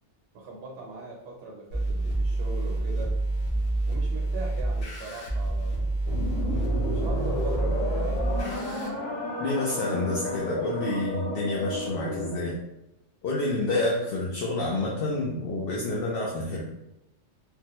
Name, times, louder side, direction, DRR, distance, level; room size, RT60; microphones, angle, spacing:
voice 1, 0.3-3.1 3.9-6.0 6.3-8.4, right 3 dB, 70° right, -2 dB, 0.9 m, -41 dB
sound 1, 1.7-8.9, right 2 dB, 80° left, 1.3 m, -28 dB
sound 2, 6.1-12.5, left 1 dB, 35° left, 0.9 m, -32 dB
voice 2, 9.4-12.6 13.2-16.6, left 2 dB, 60° left, -3 dB, 0.7 m, -28 dB
3.5 x 2.1 x 2.9 m, 0.87 s
omnidirectional pair, 1.2 m